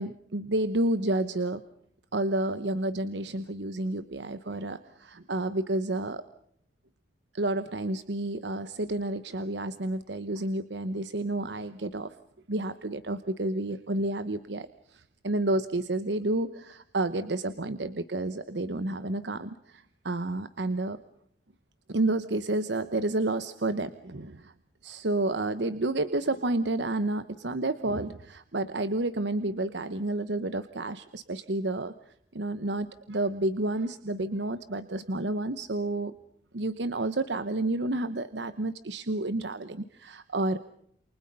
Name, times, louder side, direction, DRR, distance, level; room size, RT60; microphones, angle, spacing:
voice 1, 0.0-1.6 2.1-6.2 7.3-12.1 12.5-21.0 21.9-24.5 24.8-31.9 32.3-36.1 36.5-40.6, right 2 dB, 75° right, 12 dB, 1.0 m, -30 dB
29.0 x 28.0 x 5.5 m, 0.69 s
head